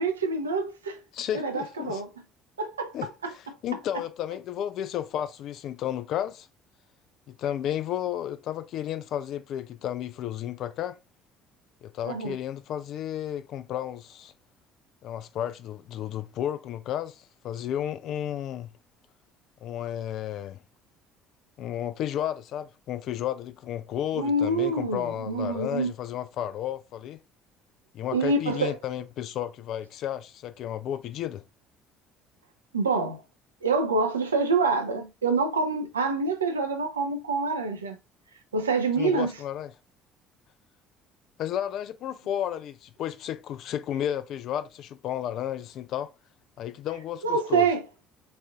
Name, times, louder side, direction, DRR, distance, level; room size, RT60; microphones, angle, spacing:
voice 1, 0.0-1.0 1.3-2.1 2.6-3.3 12.0-12.4 24.1-25.9 28.1-28.8 32.7-33.2 33.6-38.0 38.5-39.3 47.2-47.9, right 3 dB, 80° right, 0.5 m, -26 dB
voice 2, 1.1-2.0 2.9-6.5 7.3-11.0 11.8-14.3 15.0-18.7 19.6-20.6 21.6-27.2 27.9-31.4 39.0-39.7 41.4-46.1 46.6-47.7, left 11 dB, 55° left, 0.3 m, -32 dB
4.1 x 2.5 x 2.3 m
figure-of-eight pair, 55°, 0 cm